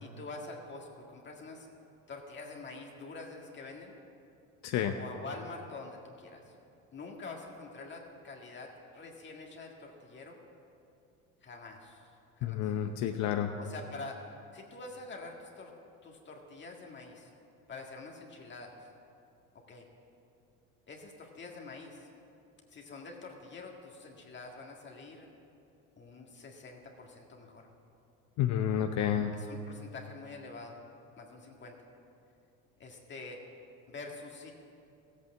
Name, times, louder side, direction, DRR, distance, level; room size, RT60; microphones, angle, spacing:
voice 1, 0.0-1.7 2.1-3.9 5.0-6.5 6.9-10.4 11.4-12.1 12.4-12.7 13.6-14.2 14.5-15.7 16.0-17.3 17.7-18.9 19.5-19.9 20.9-22.1 22.7-25.3 26.0-27.7 29.3-30.8 31.2-31.8 32.8-33.4 33.9-34.5, left 3 dB, 35° left, 0 dB, 1.8 m, -46 dB
voice 2, 4.6-5.0 12.4-13.5 28.4-29.3, left 10 dB, 55° left, 5 dB, 0.8 m, -30 dB
14.5 x 8.4 x 7.4 m, 2.6 s
supercardioid pair, 95°, 33 cm